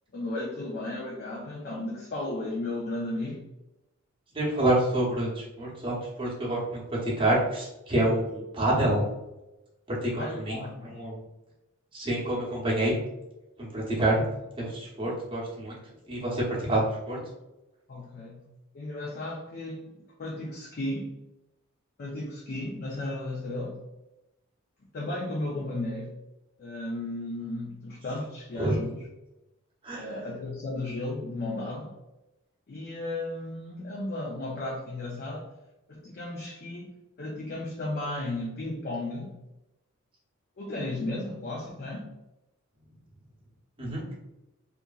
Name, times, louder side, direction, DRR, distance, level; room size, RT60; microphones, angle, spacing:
voice 1, 0.1-3.4 10.2-11.0 15.0-15.1 17.9-18.4 18.7-21.1 22.0-23.8 24.9-26.1 26.6-29.1 29.9-32.0 32.7-35.5 35.9-39.4 40.6-42.1, left 2 dB, 45° left, -3 dB, 0.5 m, -34 dB
voice 2, 4.4-9.0 9.9-10.5 10.8-11.1 12.0-12.9 13.6-14.2 14.6-15.7 16.1-16.8 17.1-17.2 28.6-28.8 29.8-30.1 43.8-44.0, right 1 dB, 25° right, -6 dB, 0.8 m, -27 dB
2.8 x 2.5 x 2.3 m, 0.97 s
head